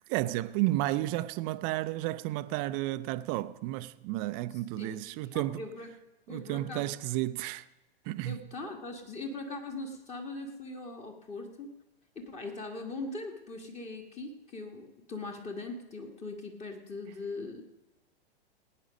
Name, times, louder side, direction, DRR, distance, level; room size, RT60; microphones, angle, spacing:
voice 1, 0.1-5.6 6.3-7.6 8.1-8.4, right 16 dB, 25° right, 0.5 m, -32 dB
voice 2, 4.5-5.9 6.3-6.9 8.2-11.7 12.1-17.6, left 2 dB, 20° left, 1.6 m, -41 dB
18.5 x 9.1 x 5.2 m
hypercardioid pair, 115°, 31 cm